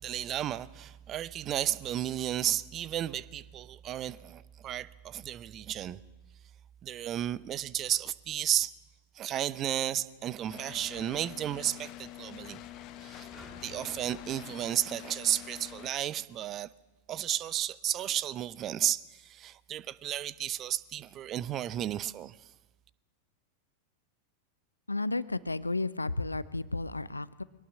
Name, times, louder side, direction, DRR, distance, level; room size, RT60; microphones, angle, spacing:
voice 1, 0.0-6.0 6.8-8.7 9.1-12.6 13.0-13.3 13.6-16.7 17.1-22.5, right 11 dB, 30° right, 0.7 m, -33 dB
Sliding door, 10.0-15.6, right 1 dB, 10° right, 6.5 m, -57 dB
sound 1, 10.5-15.9, left 15 dB, 40° left, 0.8 m, -46 dB
voice 2, 24.9-27.4, left 2 dB, 80° left, 0.6 m, -32 dB
22.0 x 18.5 x 6.3 m
figure-of-eight pair, 90°, 0 cm